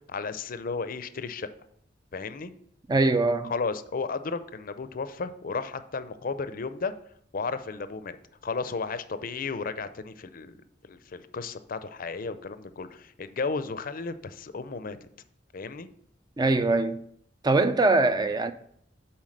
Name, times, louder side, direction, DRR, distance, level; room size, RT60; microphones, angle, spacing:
voice 1, 0.1-1.5 2.1-2.5 3.4-6.9 7.3-8.2 8.4-10.5 10.8-15.0 15.5-15.9, left 4 dB, 50° left, 0.5 m, -33 dB
voice 2, 2.9-3.5 16.4-17.0 17.4-18.5, right 2 dB, 25° right, 0.4 m, -22 dB
7.3 x 4.5 x 6.5 m
head